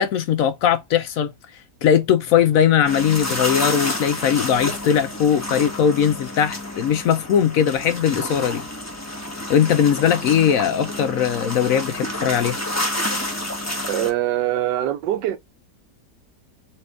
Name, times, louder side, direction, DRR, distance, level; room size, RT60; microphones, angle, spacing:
voice 1, 0.0-1.3 1.8-8.6 9.5-12.6, left 9 dB, 70° left, 0.8 m, -19 dB
sound 1, 2.8-14.1, left 1 dB, 10° left, 0.9 m, -29 dB
voice 2, 13.9-15.4, right 13 dB, 85° right, 1.3 m, -23 dB
4.4 x 3.0 x 3.5 m
omnidirectional pair, 1.8 m